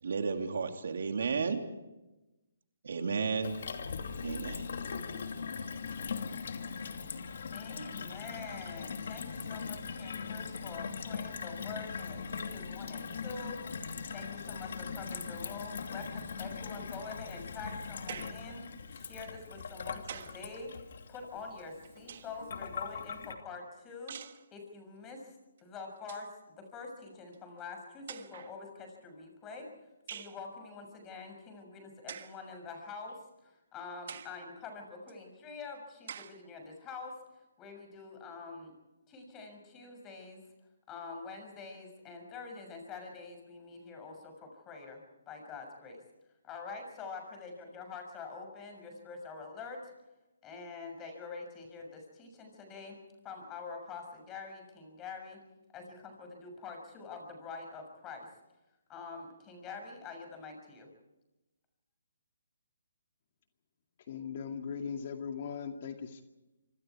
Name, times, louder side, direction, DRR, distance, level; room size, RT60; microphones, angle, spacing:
voice 1, 0.0-1.6 2.8-3.5 4.2-4.6, right 5 dB, 65° right, 5 dB, 3.0 m, -32 dB
Gurgling / Water tap faucet / Sink (filling or washing), 3.4-23.3, left 5 dB, 60° left, 2.7 m, -40 dB
voice 2, 7.5-13.6 14.1-24.1 24.5-38.8 39.1-40.4 40.9-46.0 46.4-49.9 50.4-53.0 53.2-55.4 55.7-58.3 58.9-60.9, left 4 dB, 15° left, 4 dB, 6.6 m, -46 dB
sound 1, 18.1-18.5 19.6-20.5 21.6-22.5 24.1-24.5 25.6-25.7 26.0-26.3 27.3-27.4 28.1-28.6 30.1-30.4 32.1-32.4 33.1-33.2 34.1-34.4 35.1-35.2 36.1-36.4, right 8 dB, 50° right, 1.5 m, -46 dB
voice 3, 64.1-66.2, left 6 dB, 45° left, 5 dB, 2.2 m, -39 dB
26.5 x 25.0 x 4.8 m, 1.0 s
hypercardioid pair, 155°, 0 cm